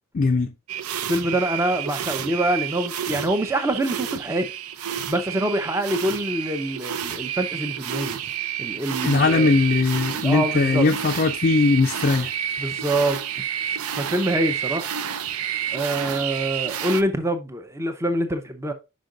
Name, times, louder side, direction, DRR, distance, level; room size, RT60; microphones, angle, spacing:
voice 1, 0.1-0.5 9.0-12.3, left 3 dB, 40° left, 0.4 m, -20 dB
sound 1, 0.7-17.0, right 9 dB, 80° right, 0.5 m, -30 dB
voice 2, 1.0-4.5 5.1-8.2 8.6-9.5 10.1-10.9 12.6-13.2 13.9-14.9 15.7-18.7, right 1 dB, 10° right, 0.6 m, -25 dB
5.2 x 5.2 x 3.7 m
head